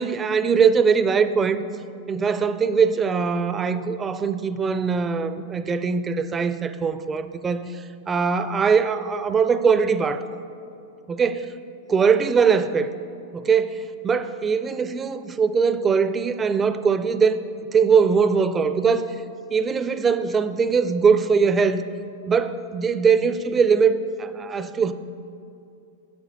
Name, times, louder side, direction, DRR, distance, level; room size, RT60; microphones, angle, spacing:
voice 1, 0.0-1.6 2.1-10.2 11.1-11.4 11.9-12.9 13.3-17.4 17.7-19.1 19.5-21.8 22.3-24.9, right 5 dB, 20° right, 12 dB, 0.4 m, -21 dB
8.7 x 7.0 x 4.1 m, 2.6 s
hypercardioid pair, 95°, 0 cm